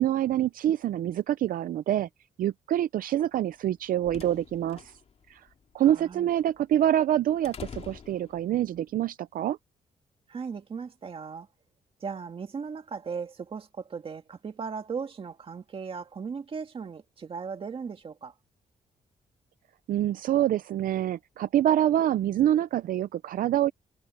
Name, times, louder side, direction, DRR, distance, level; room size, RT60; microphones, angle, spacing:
voice 1, 0.0-2.1 2.4-4.9 5.3-5.4 5.7-9.6 19.9-23.7, right 11 dB, 70° right, 0.5 m, -26 dB
sound 1, 3.5-8.8, left 6 dB, 45° left, 2.6 m, -47 dB
voice 2, 5.8-6.3 10.3-11.5 12.0-18.3, right 5 dB, 35° right, 2.0 m, -37 dB
wide cardioid pair, 165°, 15 cm